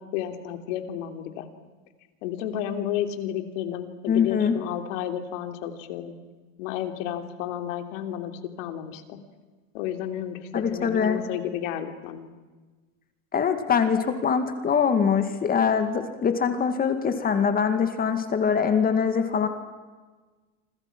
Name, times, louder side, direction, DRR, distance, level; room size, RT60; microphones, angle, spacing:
voice 1, 0.0-1.5 2.2-6.1 6.6-8.3 8.6-9.2 9.7-12.3, left 10 dB, 75° left, 7 dB, 3.2 m, -32 dB
voice 2, 4.1-4.6 10.5-11.2 13.3-19.5, left 6 dB, 25° left, 8 dB, 2.1 m, -23 dB
28.5 x 26.0 x 6.1 m, 1.3 s
supercardioid pair, 155°, 38 cm